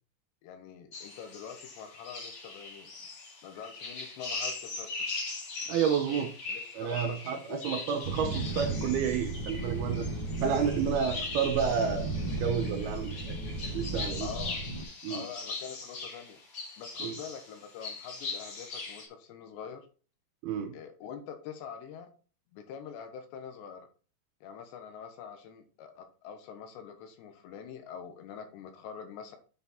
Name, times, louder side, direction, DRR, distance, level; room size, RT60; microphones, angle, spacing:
voice 1, 0.4-2.9 3.4-5.1 6.1-7.6 14.2-14.6 15.1-16.4 16.8-19.9 20.7-22.1 22.5-23.9 24.4-29.4, left 7 dB, 80° left, 6 dB, 3.4 m, -45 dB
sound 1, 0.9-19.1, left 3 dB, 40° left, 2.5 m, -40 dB
voice 2, 5.7-6.3 6.7-10.1 10.4-12.1 12.4-13.3 13.7-14.3 15.0-15.3 17.0-17.1 20.4-20.7, right 7 dB, 75° right, 6 dB, 2.5 m, -30 dB
sound 2, 8.0-14.8, right 2 dB, 30° right, 2.3 m, -35 dB
7.9 x 5.9 x 4.3 m, 0.37 s
omnidirectional pair, 5.1 m